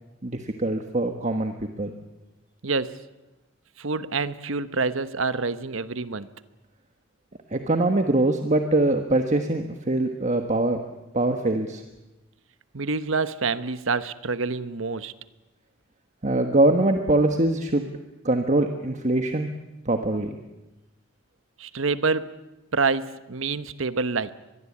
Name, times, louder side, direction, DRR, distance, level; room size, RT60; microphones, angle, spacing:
voice 1, 0.2-1.9 7.5-10.8 11.1-11.8 16.2-17.9 18.2-19.5 19.8-20.4, right 2 dB, 35° right, 6 dB, 1.4 m, -23 dB
voice 2, 2.6-3.0 3.8-6.3 12.7-15.1 21.6-22.3 22.7-24.3, right 4 dB, 70° right, 13 dB, 1.1 m, -27 dB
24.5 x 21.0 x 8.6 m, 1.0 s
head